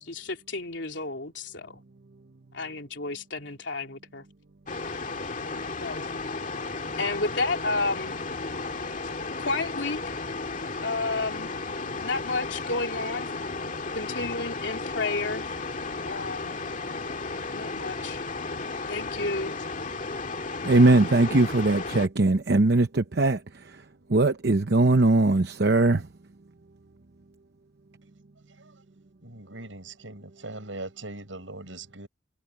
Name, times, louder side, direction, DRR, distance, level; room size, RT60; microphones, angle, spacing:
voice 1, 0.0-1.8 2.5-4.2 5.8-6.1 7.0-8.1 9.4-10.0 10.8-11.5 12.0-13.3 13.9-15.4 16.0-16.6 17.5-18.2 18.9-19.5, left 3 dB, 70° left, 3.2 m, -31 dB
sound 1, 4.7-22.1, left 3 dB, 45° left, 2.3 m, -34 dB
voice 2, 20.6-26.1, right 2 dB, 60° right, 0.8 m, -21 dB
voice 3, 28.5-28.8 29.2-32.1, right 2 dB, 90° right, 7.9 m, -41 dB
head